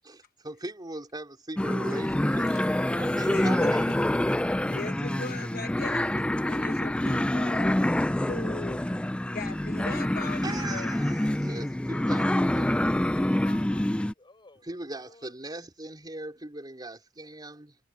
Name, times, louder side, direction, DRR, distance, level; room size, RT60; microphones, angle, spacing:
voice 1, 0.0-3.9 10.3-12.7 14.6-17.8, right 2 dB, 20° right, 4.2 m, -39 dB
sound 1, 1.6-14.1, left 1 dB, 5° left, 0.3 m, -26 dB
voice 2, 3.3-7.8 8.2-8.8 9.3-10.9, left 3 dB, 45° left, 0.9 m, -40 dB
voice 3, 12.8-15.3, left 3 dB, 25° left, 4.7 m, -53 dB
head